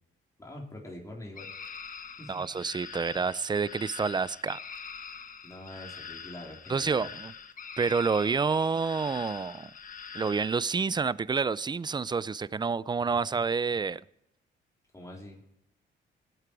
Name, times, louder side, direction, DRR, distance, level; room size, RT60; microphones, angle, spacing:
voice 1, 0.4-1.5 2.2-2.5 5.4-7.0 14.9-15.6, left 1 dB, 15° left, 3.9 m, -44 dB
sound 1, 1.4-10.6, left 6 dB, 40° left, 1.3 m, -44 dB
voice 2, 2.3-4.6 6.7-7.3 7.8-9.7 10.1-14.0, right 5 dB, 20° right, 0.5 m, -28 dB
19.5 x 9.0 x 4.8 m
cardioid pair, 90°, 20 cm